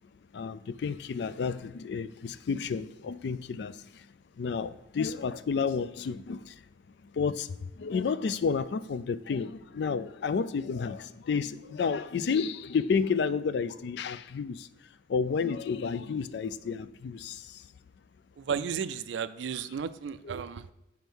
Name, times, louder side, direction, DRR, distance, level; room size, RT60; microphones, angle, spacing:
voice 1, 0.3-4.1 4.4-6.6 7.1-14.7 15.1-17.6, left 5 dB, 60° left, 0.3 m, -31 dB
voice 2, 18.4-20.7, right 7 dB, 70° right, 0.4 m, -34 dB
5.2 x 4.5 x 6.1 m
head